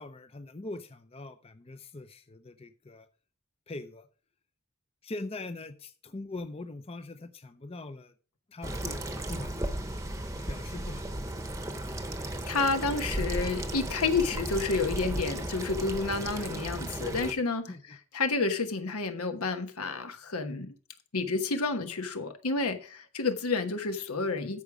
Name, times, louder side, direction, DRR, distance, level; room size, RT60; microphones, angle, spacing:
voice 1, 0.0-3.1 3.7-4.1 5.0-8.1 8.5-9.0 9.3-9.7 10.5-11.3 17.7-17.8, left 2 dB, 25° left, 0.5 m, -42 dB
sound 1, 8.6-17.3, right 1 dB, 15° right, 0.9 m, -35 dB
voice 2, 12.5-17.7 18.1-20.7 21.1-24.6, left 4 dB, 80° left, 1.2 m, -30 dB
13.5 x 5.0 x 4.9 m
head